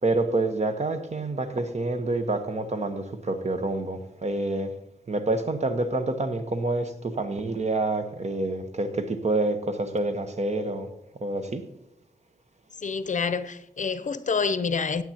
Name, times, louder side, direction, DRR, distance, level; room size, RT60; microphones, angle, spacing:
voice 1, 0.0-4.7 5.1-10.9 11.2-11.6, right 2 dB, 45° right, 1.2 m, -27 dB
voice 2, 12.8-15.0, left 5 dB, 55° left, 0.6 m, -27 dB
15.5 x 8.9 x 2.9 m
wide cardioid pair, 100°, 15 cm